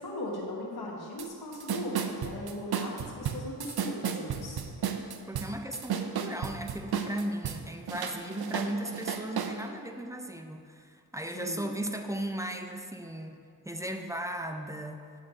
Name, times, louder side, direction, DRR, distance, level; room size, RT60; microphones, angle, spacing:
voice 1, 0.0-4.7 11.3-11.7, left 1 dB, 70° left, -3 dB, 1.2 m, -38 dB
sound 1, 1.2-1.3 1.5-7.6 7.9-9.5, right 8 dB, 70° right, 0.6 m, -33 dB
voice 2, 5.3-13.4 13.6-15.0, right 1 dB, 10° right, 5 dB, 0.4 m, -36 dB
6.8 x 6.5 x 4.4 m, 2.3 s
wide cardioid pair, 90°, 39 cm